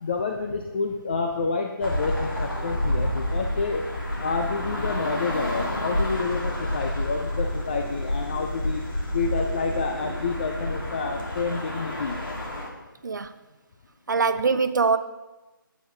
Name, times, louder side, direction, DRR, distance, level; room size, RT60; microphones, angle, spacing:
voice 1, 0.0-3.8 4.2-8.8 9.1-12.2, left 4 dB, 25° left, 0.5 m, -29 dB
sound 1, 1.8-12.7, left 1 dB, 65° left, 2.7 m, -29 dB
voice 2, 14.1-15.0, right 4 dB, 55° right, 0.6 m, -22 dB
9.3 x 9.0 x 3.9 m
figure-of-eight pair, 160°, 12 cm